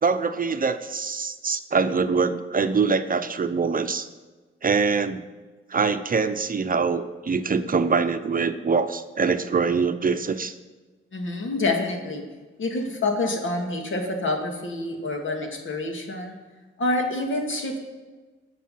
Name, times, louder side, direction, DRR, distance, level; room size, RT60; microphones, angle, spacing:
voice 1, 0.0-4.1 4.6-5.2 5.7-10.5, right 5 dB, 40° right, 9 dB, 0.8 m, -24 dB
voice 2, 11.1-12.2 12.6-16.4 16.8-17.8, left 2 dB, 65° left, 2 dB, 2.4 m, -27 dB
19.0 x 6.8 x 5.7 m, 1.3 s
wide cardioid pair, 95°, 21 cm